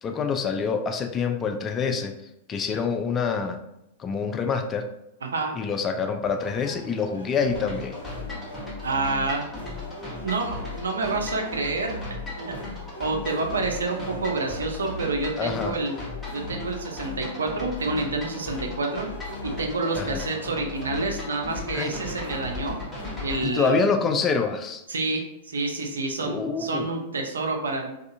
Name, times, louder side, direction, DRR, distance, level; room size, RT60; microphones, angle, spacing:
voice 1, 0.0-2.1 2.5-3.6 4.0-4.9 5.6-7.9 15.4-15.7 20.0-20.2 21.7-21.9 23.4-24.8 26.2-26.9, left 5 dB, 25° left, 5 dB, 0.3 m, -26 dB
voice 2, 5.2-5.5 8.8-9.4 10.0-11.9 12.4-12.6 13.0-15.9 16.3-19.1 19.4-22.8 23.2-23.9 24.9-25.2 25.5-27.9, right 3 dB, 75° right, 2 dB, 0.5 m, -28 dB
sound 1, 6.2-24.4, left 1 dB, 80° left, 0.6 m, -40 dB
sound 2, 7.6-23.4, left 2 dB, 10° left, 0.9 m, -37 dB
2.4 x 2.3 x 2.6 m, 0.85 s
figure-of-eight pair, 100°, 0 cm